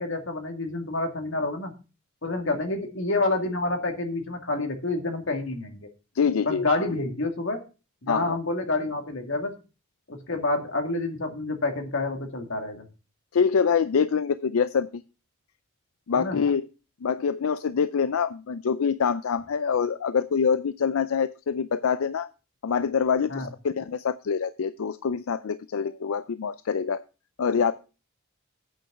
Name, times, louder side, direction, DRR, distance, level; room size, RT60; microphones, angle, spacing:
voice 1, 0.0-1.7 2.2-5.9 6.5-7.6 8.0-9.5 10.1-12.8 16.1-16.4 23.3-23.5, left 2 dB, 65° left, 4 dB, 2.2 m, -28 dB
voice 2, 6.2-6.7 8.1-8.4 13.3-15.0 16.1-16.7 17.0-22.3 22.6-27.0 27.4-27.7, left 6 dB, 90° left, 14 dB, 0.5 m, -25 dB
8.8 x 6.3 x 6.6 m, 0.32 s
head